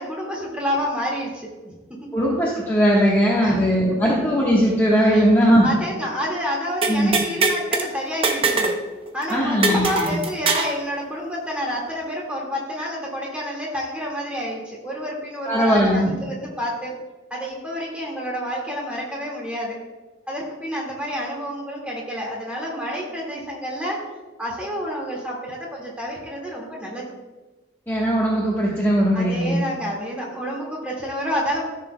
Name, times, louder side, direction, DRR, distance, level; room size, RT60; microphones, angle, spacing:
voice 1, 0.0-1.8 2.0-2.1 3.4-3.6 4.0-4.1 5.1-5.3 5.6-8.8 9.1-16.9 17.3-19.8 20.3-24.0 24.4-27.1 29.1-31.6, equal, 5° right, -3 dB, 1.9 m, -29 dB
voice 2, 2.1-5.7 6.9-7.2 9.3-10.1 15.5-16.1 27.9-29.6, equal, 10° left, -6 dB, 1.2 m, -19 dB
sound 1, 6.8-7.9 8.2-8.8 9.1-9.2 9.6-10.8, right 3 dB, 30° right, 0.6 m, -21 dB
13.5 x 6.7 x 2.2 m, 1.2 s
head